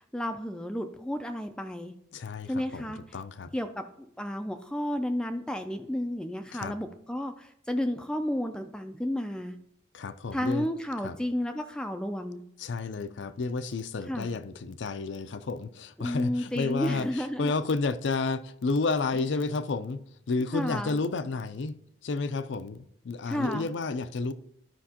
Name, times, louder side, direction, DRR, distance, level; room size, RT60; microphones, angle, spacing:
voice 1, 0.0-1.9 2.5-3.0 3.5-9.6 10.3-12.4 14.1-14.3 16.0-17.6 20.5-21.0 23.3-23.7, equal, 5° left, 0.3 m, -32 dB
voice 2, 2.1-2.8 3.1-3.5 6.5-6.7 9.9-10.7 11.0-11.2 12.6-20.0 20.3-21.8 22.0-24.3, left 3 dB, 70° left, 0.5 m, -31 dB
12.5 x 5.2 x 2.8 m
head